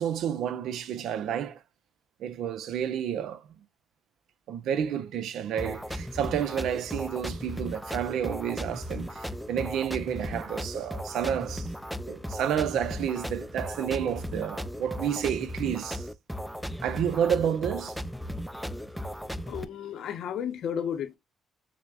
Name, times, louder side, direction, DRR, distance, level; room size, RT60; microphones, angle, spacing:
voice 1, 0.0-1.6 2.2-3.5 4.5-11.7 12.1-16.1 16.8-18.0, right 9 dB, 80° right, 0.5 m, -30 dB
sound 1, 5.6-19.6, equal, ahead, 0.3 m, -36 dB
voice 2, 19.5-21.2, left 8 dB, 70° left, 0.6 m, -33 dB
5.7 x 2.1 x 2.3 m
cardioid pair, 90°, 0 cm